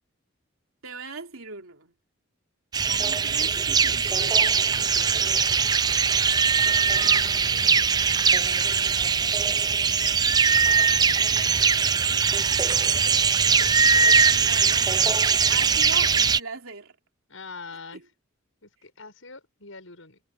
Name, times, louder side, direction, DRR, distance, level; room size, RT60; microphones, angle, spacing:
voice 1, 0.8-1.9 2.8-5.3 14.3-15.2 15.5-17.0, right 4 dB, 90° right, 3.4 m, -40 dB
sound 1, 2.7-16.4, right 6 dB, 20° right, 0.4 m, -21 dB
voice 2, 2.9-3.3 6.9-9.2 11.2-11.7 12.7-13.2 13.4-14.0 17.3-18.0 18.6-20.2, left 3 dB, 75° left, 6.6 m, -46 dB
head